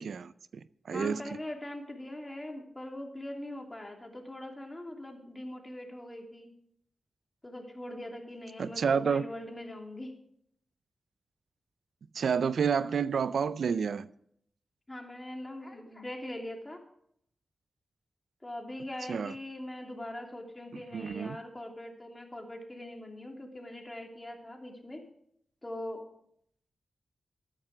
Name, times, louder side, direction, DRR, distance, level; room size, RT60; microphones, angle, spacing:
voice 1, 0.0-1.2 8.6-9.2 12.1-14.1 19.1-19.3 20.9-21.4, right 6 dB, 80° right, 0.4 m, -29 dB
voice 2, 0.9-6.5 7.4-10.1 14.9-16.8 18.4-25.0 25.6-26.0, left 1 dB, 25° left, 2.8 m, -41 dB
13.5 x 8.9 x 4.8 m
cardioid pair, 45°, 0 cm